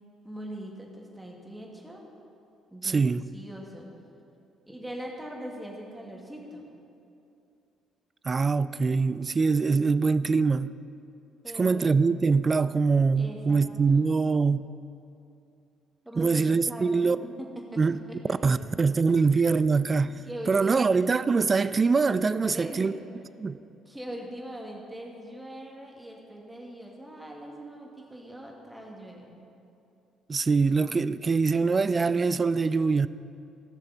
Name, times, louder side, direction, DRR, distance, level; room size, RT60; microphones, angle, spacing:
voice 1, 0.2-2.0 2.7-3.1 3.3-3.9 4.7-6.6 8.8-9.2 11.4-11.8 13.2-14.1 16.0-17.8 18.1-18.6 20.2-21.0 22.4-23.0 23.9-29.4, right 1 dB, 10° right, 2.2 m, -41 dB
voice 2, 2.8-3.2 8.3-10.7 11.6-14.7 16.2-17.2 17.8-18.0 18.4-20.2 20.5-22.9 23.4-23.6 30.3-33.1, right 4 dB, 35° right, 0.3 m, -23 dB
17.0 x 6.6 x 4.3 m
figure-of-eight pair, 45°, 0 cm